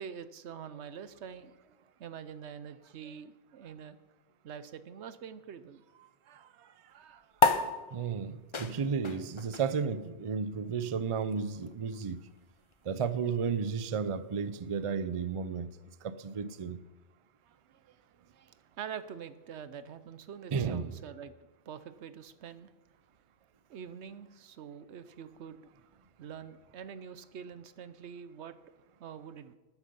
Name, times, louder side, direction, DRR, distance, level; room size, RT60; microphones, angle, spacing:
voice 1, 0.0-4.0 4.4-7.7 17.5-18.0 18.3-21.4 21.7-22.7 23.7-25.6 26.2-28.5 29.0-29.6, right 7 dB, 80° right, 1.0 m, -46 dB
sound 1, 7.4-14.2, left 4 dB, 30° left, 0.6 m, -34 dB
voice 2, 7.9-12.2 12.8-15.7 16.0-16.8 20.5-20.9, right 6 dB, 40° right, 0.5 m, -33 dB
13.5 x 9.4 x 5.3 m
omnidirectional pair, 1.1 m